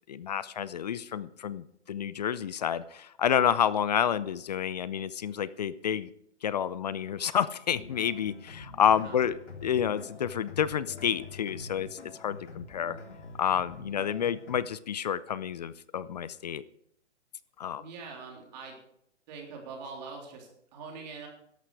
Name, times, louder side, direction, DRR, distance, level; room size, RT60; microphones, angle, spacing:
voice 1, 0.1-6.1 6.4-11.9 12.2-13.0 13.4-16.6 17.6-17.8, left 9 dB, 35° left, 17 dB, 0.5 m, -29 dB
sound 1, 7.7-14.6, left 4 dB, 80° left, 3.4 m, -46 dB
voice 2, 8.9-9.2 17.8-18.8 19.3-21.3, right 4 dB, 35° right, 0 dB, 3.6 m, -43 dB
13.5 x 11.5 x 4.8 m, 0.73 s
hypercardioid pair, 145°, 35 cm